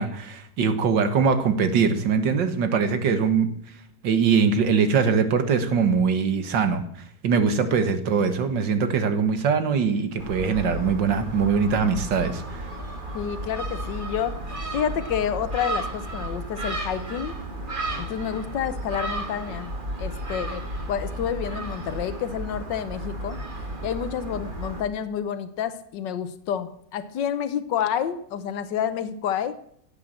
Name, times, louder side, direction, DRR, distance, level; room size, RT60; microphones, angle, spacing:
voice 1, 0.0-3.5 4.0-6.8 7.2-12.6, right 5 dB, 90° right, 9 dB, 2.2 m, -22 dB
Gull seagull, 10.2-24.8, right 1 dB, 30° right, 2.2 m, -33 dB
voice 2, 13.1-17.4 18.0-23.4 23.8-29.5, left 8 dB, 85° left, 12 dB, 1.6 m, -29 dB
16.5 x 8.5 x 7.5 m, 0.67 s
omnidirectional pair, 1.9 m